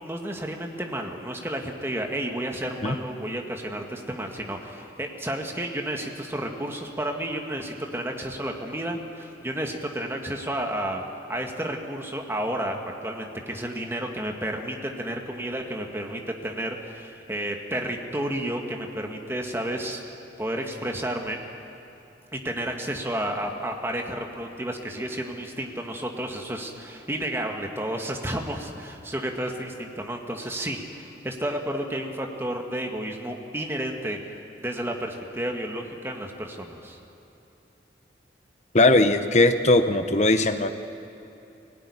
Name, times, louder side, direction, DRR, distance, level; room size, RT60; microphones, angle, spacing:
voice 1, 0.0-11.0 11.3-21.4 22.3-37.0, right 1 dB, 15° right, 2 dB, 1.8 m, -31 dB
voice 2, 38.7-40.7, left 2 dB, 40° left, 9 dB, 1.0 m, -19 dB
22.0 x 17.5 x 9.9 m, 2.9 s
head